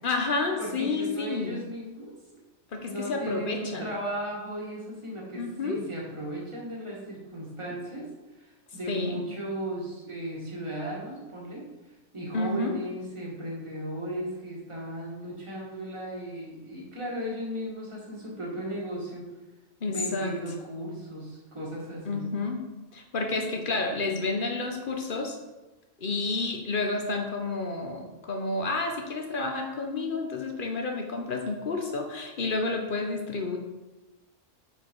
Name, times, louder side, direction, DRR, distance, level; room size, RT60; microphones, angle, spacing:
voice 1, 0.0-1.6 2.7-3.9 5.4-5.8 8.9-9.2 12.3-12.8 19.8-20.3 22.1-22.6 22.9-25.4 26.0-33.6, left 3 dB, 45° left, 3 dB, 0.9 m, -30 dB
voice 2, 0.6-2.1 2.9-19.3 19.9-22.3, right 1 dB, 20° right, -4 dB, 1.8 m, -36 dB
6.6 x 4.7 x 4.5 m, 1.1 s
omnidirectional pair, 1.4 m